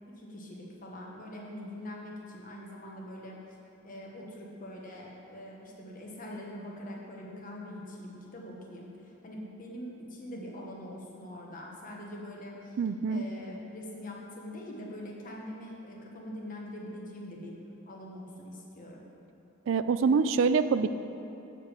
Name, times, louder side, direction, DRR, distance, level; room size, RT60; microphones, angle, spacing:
voice 1, 0.0-3.4 3.8-12.8 13.1-17.6 17.9-19.1, left 1 dB, 40° left, -2 dB, 1.1 m, -43 dB
voice 2, 12.8-13.2 19.7-20.9, right 5 dB, 65° right, 12 dB, 0.3 m, -25 dB
6.5 x 5.3 x 7.2 m, 2.9 s
head